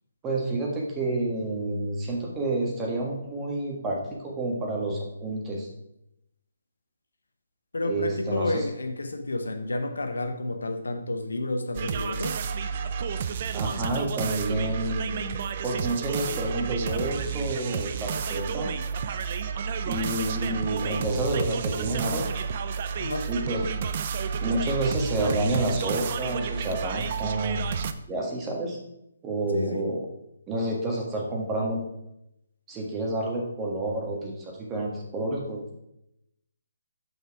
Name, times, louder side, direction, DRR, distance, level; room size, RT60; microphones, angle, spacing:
voice 1, 0.2-5.7 7.8-8.6 13.5-15.4 15.6-18.7 19.8-22.3 23.3-23.7 24.4-27.8 28.1-28.8 29.2-30.0 30.5-31.8 32.7-35.8, right 2 dB, 15° right, -1 dB, 1.5 m, -29 dB
voice 2, 7.7-12.4 23.0-23.3 29.5-29.8, left 2 dB, 90° left, 7 dB, 0.9 m, -30 dB
sound 1, 11.7-27.9, right 6 dB, 45° right, 0.5 m, -31 dB
6.1 x 5.5 x 4.7 m, 0.82 s
hypercardioid pair, 150°, 0 cm